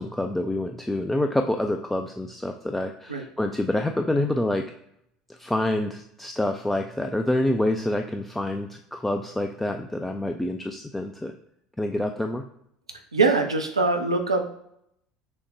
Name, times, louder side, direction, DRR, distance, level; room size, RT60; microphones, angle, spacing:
voice 1, 0.0-4.6 5.3-11.3 11.8-12.4, left 1 dB, 5° left, 4 dB, 0.3 m, -27 dB
voice 2, 13.1-14.5, right 3 dB, 85° right, 4 dB, 0.4 m, -22 dB
6.1 x 2.1 x 3.1 m, 0.75 s
figure-of-eight pair, 65°, 3 cm